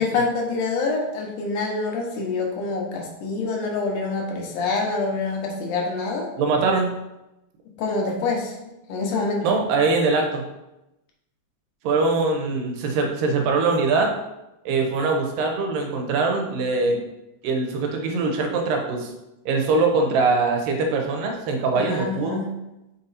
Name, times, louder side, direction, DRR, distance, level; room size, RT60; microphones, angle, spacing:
voice 1, 0.0-6.3 7.8-9.6 21.7-22.5, left 3 dB, 75° left, 0 dB, 2.4 m, -26 dB
voice 2, 6.4-6.9 9.4-10.4 11.8-14.1 14.7-17.0 17.4-19.1 19.5-22.4, right 3 dB, 90° right, 2 dB, 2.6 m, -22 dB
6.0 x 4.2 x 4.1 m, 0.94 s
omnidirectional pair, 3.8 m